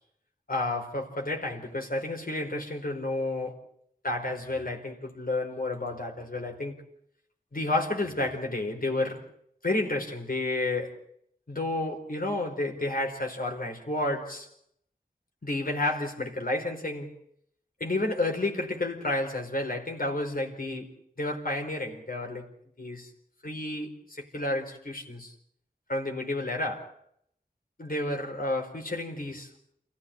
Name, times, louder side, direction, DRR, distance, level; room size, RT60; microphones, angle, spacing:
voice 1, 0.5-3.6 4.0-6.8 7.5-9.3 9.6-11.0 11.5-14.5 15.4-17.1 17.8-22.5 22.8-23.1 23.4-25.3 25.9-26.9 27.8-29.5, left 2 dB, 65° left, 4.8 m, -31 dB
29.0 x 15.5 x 8.8 m
wide cardioid pair, 55°, 16 cm